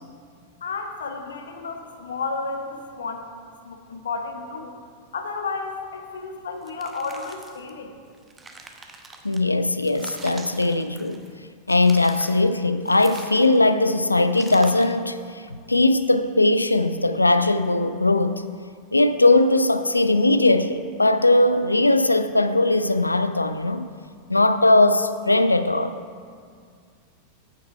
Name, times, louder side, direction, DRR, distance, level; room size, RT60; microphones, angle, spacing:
voice 1, 0.6-2.7 3.0-3.3 3.6-4.8 5.1-8.0, left 4 dB, 65° left, 0.9 m, -32 dB
sound 1, 6.6-7.7 8.1-9.4 9.8-11.3 11.7-12.4 12.8-13.7 14.3-15.0, right 3 dB, 15° right, 0.8 m, -43 dB
voice 2, 9.2-11.2 11.7-18.4 18.9-23.9 24.3-25.9, left 2 dB, 85° left, 0.4 m, -19 dB
9.1 x 7.2 x 4.7 m
figure-of-eight pair, 90°, 0 cm